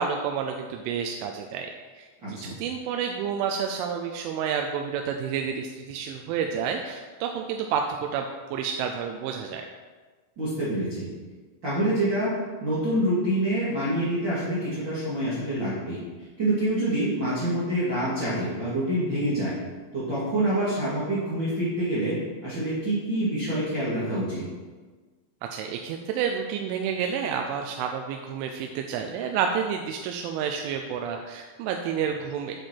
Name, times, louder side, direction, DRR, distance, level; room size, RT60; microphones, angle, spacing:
voice 1, 0.0-9.7 25.5-32.6, right 7 dB, 80° right, 4 dB, 2.9 m, -30 dB
voice 2, 2.2-2.5 10.4-11.0 11.6-16.0 16.4-19.5 19.9-24.4, right 1 dB, 45° right, -10 dB, 1.5 m, -26 dB
8.8 x 7.8 x 4.5 m, 1.4 s
omnidirectional pair, 5.8 m